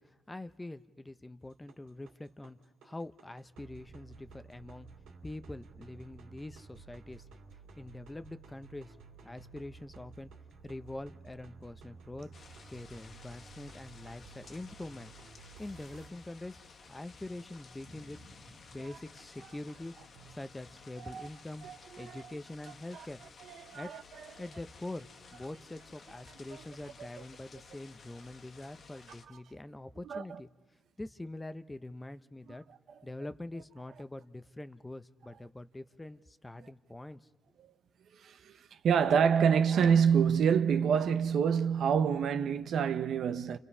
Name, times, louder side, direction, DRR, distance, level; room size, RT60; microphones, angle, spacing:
voice 1, 0.0-2.6 2.8-4.9 5.2-7.3 7.8-9.0 9.2-10.3 10.6-12.3 12.7-15.1 15.6-16.6 16.9-18.2 18.7-19.9 20.3-21.7 22.0-23.2 23.7-23.9 24.4-30.5 31.0-32.6 33.0-37.2, left 2 dB, 15° left, 0.7 m, -44 dB
sound 1, 1.4-16.1, right 4 dB, 85° right, 2.7 m, -54 dB
sound 2, 12.3-29.3, left 4 dB, 50° left, 1.7 m, -55 dB
voice 2, 23.6-24.0 26.5-26.6 30.1-30.2 38.2-38.5 38.8-43.6, right 7 dB, 65° right, 1.0 m, -26 dB
30.0 x 28.0 x 5.6 m
cardioid pair, 90°, 0 cm